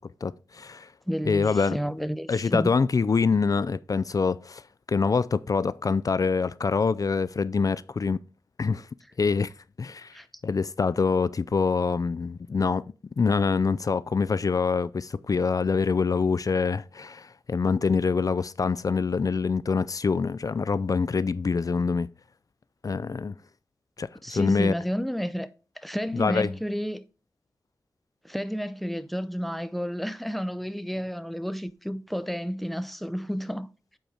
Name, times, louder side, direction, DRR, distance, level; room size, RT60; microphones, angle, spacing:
voice 1, 0.2-0.9 1.3-1.8 2.3-4.6 4.9-8.2 8.6-8.9 9.2-9.5 9.8-10.2 10.4-22.1 22.8-23.3 24.0-24.7 26.1-26.5, left 5 dB, 50° left, 0.4 m, -25 dB
voice 2, 1.1-2.7 10.1-10.3 24.2-25.5 25.8-27.0 28.2-33.7, equal, ahead, 0.7 m, -31 dB
8.0 x 4.4 x 4.9 m
wide cardioid pair, 65°, 8 cm